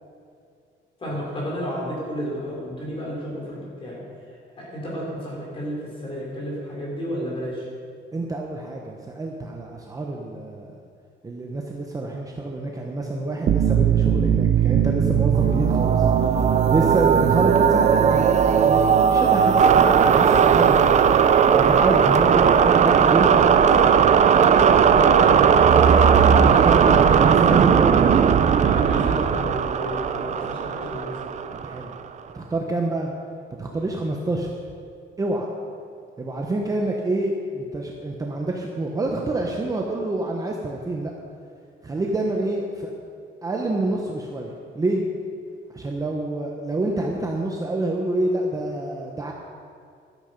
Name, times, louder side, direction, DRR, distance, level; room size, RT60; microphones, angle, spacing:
voice 1, 1.0-4.0 4.6-7.7 24.9-26.0 28.6-31.2, equal, 25° left, -4 dB, 4.1 m, -31 dB
voice 2, 8.1-10.7 11.2-21.0 21.5-23.9 26.4-28.4 31.6-31.9 32.3-33.1 33.6-34.5 35.2-35.5 36.2-41.1 41.8-42.9 43.4-45.0 45.7-49.3, right 2 dB, 15° right, 0 dB, 0.9 m, -27 dB
sound 1, 13.5-31.9, right 7 dB, 35° right, 0.5 m, -17 dB
13.5 x 12.5 x 5.2 m, 2.3 s
cardioid pair, 180°, 20 cm